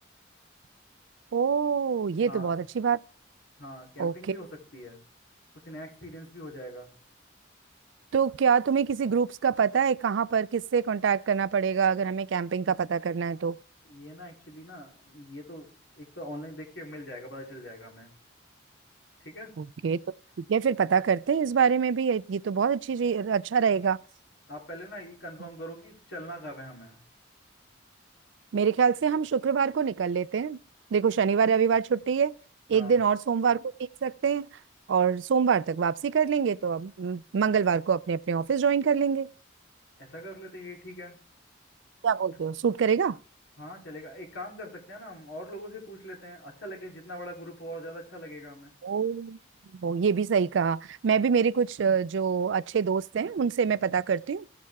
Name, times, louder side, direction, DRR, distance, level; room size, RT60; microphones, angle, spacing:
voice 1, 1.3-3.0 4.0-4.4 8.1-13.6 19.6-20.0 20.5-24.0 28.5-30.6 30.9-32.3 32.7-33.6 34.0-34.5 34.9-39.3 42.0-43.2 48.8-49.4 49.7-54.5, right 6 dB, 70° right, 0.4 m, -25 dB
voice 2, 2.2-2.6 3.6-5.0 5.6-6.9 13.8-18.1 19.2-19.5 24.5-27.0 32.7-33.0 40.0-41.2 43.6-48.7 53.7-53.9, equal, 65° left, 3.5 m, -42 dB
15.5 x 6.6 x 3.5 m
head